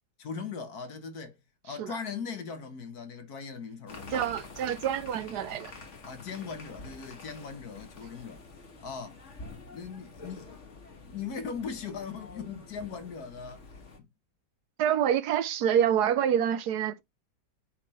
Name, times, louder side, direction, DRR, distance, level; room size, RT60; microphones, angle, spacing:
voice 1, 0.2-1.4 1.6-4.4 6.1-8.4 8.8-9.2 9.7-10.5 11.1-13.7, left 5 dB, 60° left, 1.6 m, -39 dB
sound 1, 3.9-14.0, left 3 dB, 45° left, 1.8 m, -47 dB
voice 2, 4.1-5.7 14.8-17.0, right 9 dB, 70° right, 1.2 m, -27 dB
7.4 x 3.7 x 4.2 m
omnidirectional pair, 1.9 m